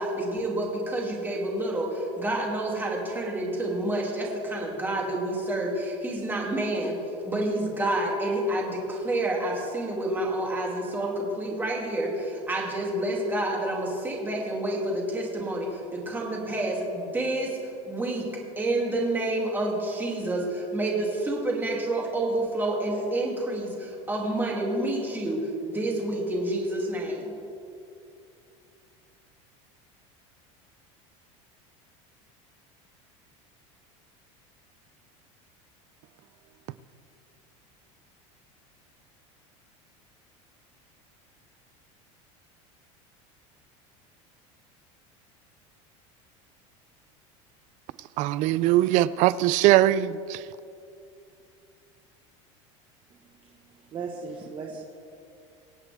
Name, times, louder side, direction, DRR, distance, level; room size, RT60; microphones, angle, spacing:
voice 1, 0.0-7.0 7.2-17.6 17.9-18.3 18.6-27.3, right 1 dB, 10° right, 2.6 m, -29 dB
voice 2, 48.2-50.4, right 14 dB, 50° right, 0.4 m, -21 dB
voice 3, 53.4-54.8, right 5 dB, 35° right, 1.3 m, -38 dB
24.5 x 8.3 x 3.5 m
supercardioid pair, 135°, 16 cm